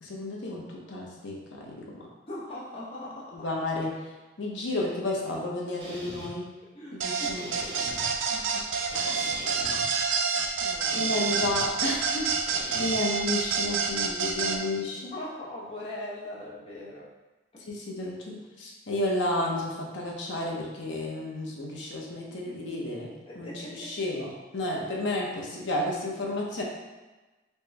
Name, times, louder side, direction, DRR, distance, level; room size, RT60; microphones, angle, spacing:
voice 1, 0.0-2.0 3.3-3.9 4.4-6.5 6.9-7.5 8.3-9.9 10.9-12.5 12.8-15.1 17.6-23.1 23.4-26.6, left 1 dB, 75° left, -2 dB, 0.7 m, -32 dB
voice 2, 2.3-3.4 6.7-7.8 10.3-11.4 15.1-17.1 17.5-17.7 22.4-22.8 23.3-24.1, left 1 dB, 30° left, -7 dB, 0.6 m, -41 dB
sound 1, 5.8-6.3 7.4-8.1 8.9-9.9 10.9-11.6 12.5-12.9, equal, 65° right, 1.1 m, -41 dB
sound 2, 7.0-14.6, right 5 dB, 85° right, 0.4 m, -28 dB
4.3 x 2.1 x 3.3 m, 1.2 s
head